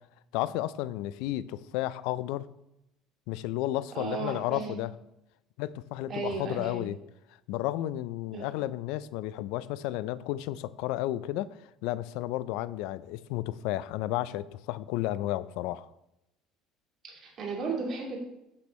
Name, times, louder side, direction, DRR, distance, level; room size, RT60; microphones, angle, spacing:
voice 1, 0.3-2.4 3.3-4.9 5.6-7.0 7.5-11.5 11.8-15.9, left 15 dB, 75° left, 17 dB, 0.3 m, -32 dB
voice 2, 3.9-4.8 6.1-6.8 8.3-8.5 17.0-18.2, right 4 dB, 45° right, -2 dB, 2.4 m, -35 dB
8.5 x 6.1 x 3.1 m, 0.87 s
supercardioid pair, 110°, 0 cm